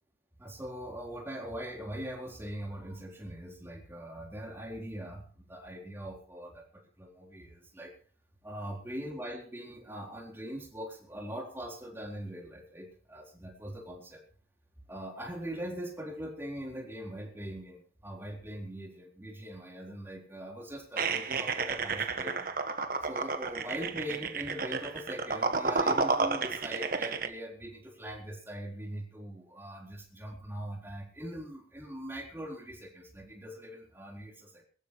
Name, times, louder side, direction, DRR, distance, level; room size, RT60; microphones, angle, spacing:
voice 1, 0.4-7.9 8.4-14.2 14.9-22.5 23.0-34.6, equal, 15° right, 0 dB, 4.0 m, -41 dB
sound 1, 21.0-27.3, right 4 dB, 50° right, 1.5 m, -31 dB
23.0 x 13.5 x 3.1 m, 0.44 s
head